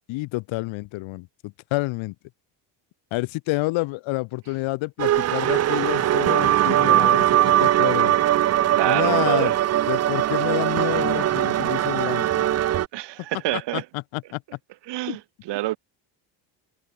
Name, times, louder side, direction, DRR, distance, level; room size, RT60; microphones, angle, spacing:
voice 1, 0.1-2.1 3.1-8.1 8.8-9.5 9.9-12.4 13.5-14.4 15.1-15.2, left 21 dB, 75° left, 1.4 m, -29 dB
是我的脑海还是云的末端, 5.0-12.9, right 12 dB, 35° right, 0.6 m, -20 dB
voice 2, 8.7-9.6 12.9-13.9 14.9-15.2 15.5-15.8, right 16 dB, 65° right, 2.2 m, -26 dB
cardioid pair, 150°, 47 cm